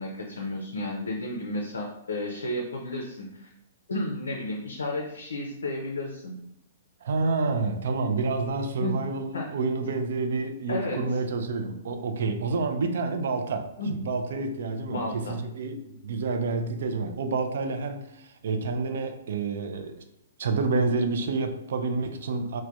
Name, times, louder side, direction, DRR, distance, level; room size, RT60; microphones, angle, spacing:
voice 1, 0.0-3.5 3.9-6.4 8.8-9.0 9.3-9.5 10.7-11.2 13.8-14.0 14.9-15.4, left 1 dB, 65° left, 1 dB, 0.4 m, -32 dB
voice 2, 7.0-19.9 20.4-22.6, right 3 dB, 55° right, 7 dB, 0.3 m, -28 dB
3.2 x 2.1 x 2.6 m, 0.80 s
figure-of-eight pair, 110°, 0 cm